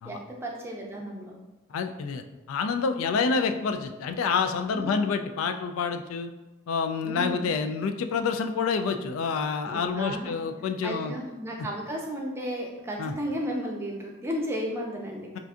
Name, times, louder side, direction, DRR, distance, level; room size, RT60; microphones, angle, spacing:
voice 1, 0.0-1.4 4.7-5.0 7.0-7.5 9.6-10.4 10.8-15.4, equal, 10° right, -1 dB, 0.4 m, -34 dB
voice 2, 1.7-6.3 6.7-11.1 13.0-13.1, left 5 dB, 90° left, 8 dB, 0.3 m, -28 dB
4.3 x 2.5 x 2.4 m, 1.1 s
head